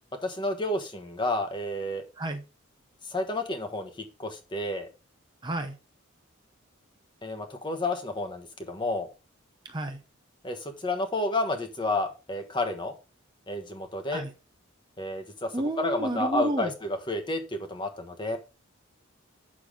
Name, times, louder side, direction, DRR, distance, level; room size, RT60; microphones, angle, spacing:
voice 1, 0.2-2.0 3.1-4.9 7.2-9.1 10.4-12.9 13.5-14.2 15.0-15.5 15.8-18.4, left 2 dB, 20° left, 1.3 m, -30 dB
voice 2, 5.4-5.7 9.6-10.0 14.1-14.3 15.5-16.7, right 1 dB, 20° right, 0.8 m, -30 dB
8.5 x 6.8 x 3.7 m
head